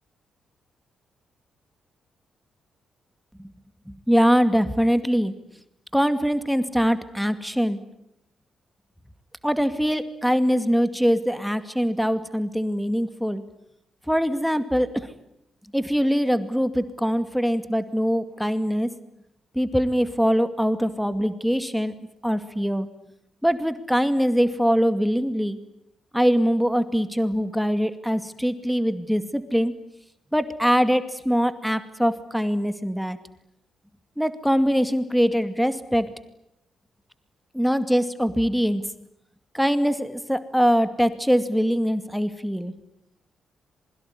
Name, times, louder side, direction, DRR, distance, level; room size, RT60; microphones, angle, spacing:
voice 1, 3.9-5.3 5.9-7.8 9.4-13.4 14.1-15.1 15.7-18.9 19.5-21.9 22.2-22.9 23.4-25.6 26.1-29.7 30.3-33.2 34.2-36.1 37.5-38.8 39.5-42.7, equal, ahead, 10 dB, 2.3 m, -23 dB
27.0 x 22.5 x 9.9 m, 0.79 s
hypercardioid pair, 50°, 0 cm